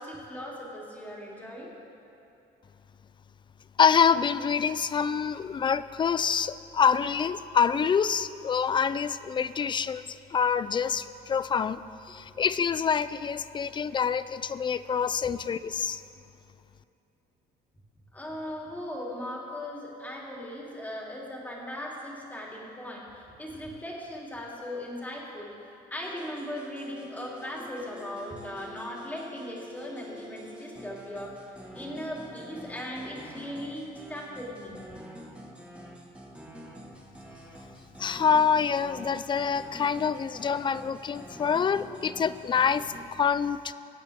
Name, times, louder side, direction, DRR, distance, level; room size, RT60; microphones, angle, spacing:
voice 1, 0.0-1.7 18.1-25.5 25.9-31.3 31.7-34.8, left 1 dB, 10° left, -4 dB, 3.0 m, -38 dB
voice 2, 3.8-11.8 12.1-16.0 38.0-43.7, left 6 dB, 30° left, 15 dB, 0.4 m, -26 dB
sound 1, 26.0-43.0, equal, 5° right, 1.6 m, -47 dB
23.5 x 8.7 x 3.6 m, 2.7 s
cardioid pair, 110°, 17 cm